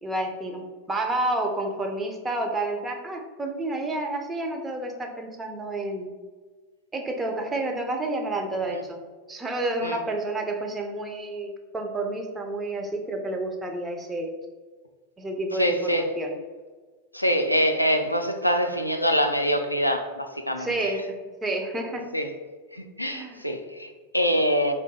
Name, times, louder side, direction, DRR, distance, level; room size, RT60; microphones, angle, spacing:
voice 1, 0.0-6.1 6.9-9.0 9.3-14.3 15.2-16.3 20.6-22.1 23.1-23.4, right 2 dB, 15° right, 3 dB, 0.5 m, -30 dB
voice 2, 15.5-16.1 17.1-20.9 22.1-22.3 22.7-24.7, equal, 90° left, 4 dB, 0.3 m, -25 dB
3.8 x 2.6 x 3.5 m, 1.4 s
figure-of-eight pair, 90°, 0 cm